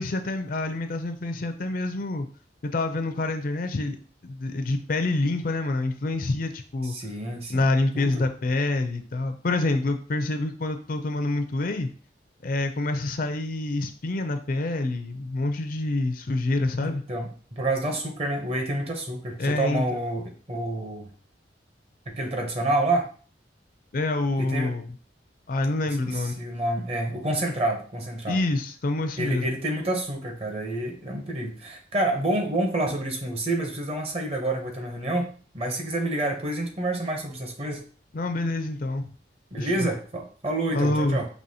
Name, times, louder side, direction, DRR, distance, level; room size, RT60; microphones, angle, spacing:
voice 1, 0.0-2.3 2.6-4.0 4.2-6.9 7.5-11.9 12.4-17.0 19.4-19.8 23.9-24.9 25.5-26.4 28.3-29.5 38.1-39.1 39.6-39.7 40.7-41.2, left 2 dB, 50° left, 8 dB, 0.5 m, -27 dB
voice 2, 6.8-7.6 7.9-8.3 16.8-21.1 22.1-23.1 24.4-24.7 25.9-28.4 29.2-37.8 39.5-41.3, right 1 dB, 35° right, 3 dB, 0.8 m, -28 dB
5.4 x 2.9 x 2.8 m, 0.42 s
head